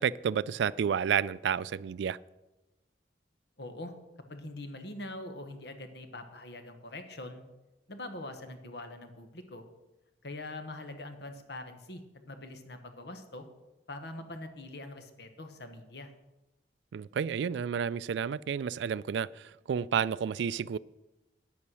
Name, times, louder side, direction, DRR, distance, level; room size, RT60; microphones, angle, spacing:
voice 1, 0.0-2.2 16.9-20.8, right 7 dB, 75° right, 0.3 m, -30 dB
voice 2, 3.6-3.9 4.3-7.4 7.9-9.6 10.2-12.0 12.3-13.5 13.9-16.1, left 2 dB, 65° left, 1.3 m, -43 dB
9.5 x 8.5 x 6.2 m
head